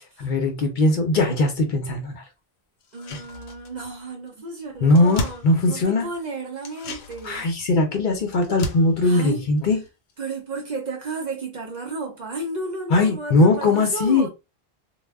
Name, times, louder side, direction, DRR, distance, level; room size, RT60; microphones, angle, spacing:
voice 1, 0.2-2.2 4.8-6.1 7.2-9.8 12.9-14.3, left 2 dB, 55° left, 0.7 m, -20 dB
sound 1, 2.8-4.0 4.3-4.4 4.6-6.1 6.6-10.3 10.6-10.7, left 2 dB, 90° left, 0.8 m, -36 dB
voice 2, 2.9-7.5 9.0-9.4 10.2-14.3, right 3 dB, 55° right, 0.6 m, -33 dB
2.1 x 2.0 x 3.4 m
omnidirectional pair, 1.1 m